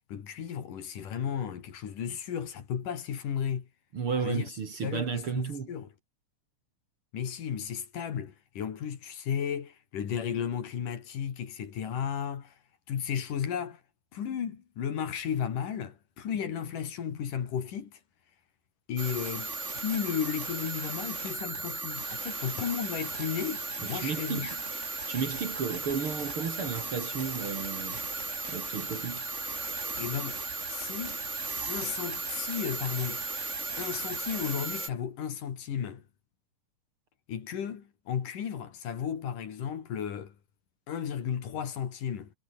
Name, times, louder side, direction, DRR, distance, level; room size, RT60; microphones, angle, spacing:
voice 1, 0.1-3.7 4.2-4.5 4.8-5.9 7.1-12.5 12.9-13.8 14.1-18.0 18.9-24.6 30.0-30.4 30.7-31.2 31.7-33.4 33.8-36.0 37.3-40.3 40.9-42.3, left 8 dB, 70° left, 4.0 m, -34 dB
voice 2, 3.9-5.7 23.9-24.5 25.1-28.0 28.5-29.3, right 6 dB, 45° right, 2.7 m, -33 dB
sound 1, 19.0-34.9, right 3 dB, 20° right, 3.0 m, -36 dB
omnidirectional pair, 3.9 m